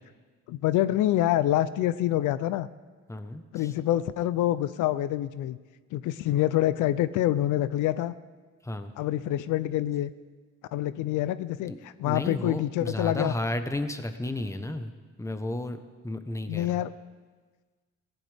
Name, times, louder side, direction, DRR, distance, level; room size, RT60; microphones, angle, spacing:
voice 1, 0.5-2.7 3.5-5.6 5.9-8.1 9.0-10.1 10.7-13.3 16.5-16.9, left 13 dB, 85° left, 15 dB, 0.5 m, -26 dB
voice 2, 3.1-3.7 8.6-8.9 11.7-11.8 12.1-14.9 15.2-15.8 16.0-16.8, left 1 dB, 10° left, 8 dB, 1.1 m, -33 dB
19.0 x 16.0 x 3.5 m, 1.4 s
cardioid pair, 90°, 30 cm